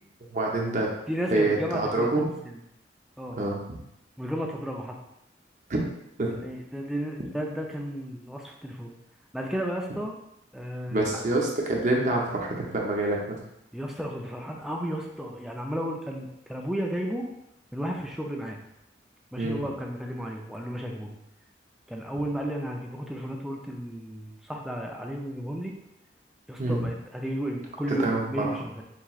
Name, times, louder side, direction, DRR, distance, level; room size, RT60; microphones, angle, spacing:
voice 1, 0.3-0.9 1.3-2.3 3.4-3.6 5.7-5.8 6.2-6.3 10.9-13.4 19.4-19.6 26.6-26.8 28.0-28.6, right 2 dB, 45° right, -1 dB, 0.7 m, -26 dB
voice 2, 1.1-2.1 2.5-2.6 3.2-3.4 4.2-5.0 6.4-8.9 9.3-10.1 10.5-11.3 13.7-17.3 17.7-18.6 19.3-21.2 21.9-25.7 26.5-28.8, equal, ahead, 0 dB, 0.4 m, -33 dB
4.5 x 2.9 x 2.4 m, 0.82 s
head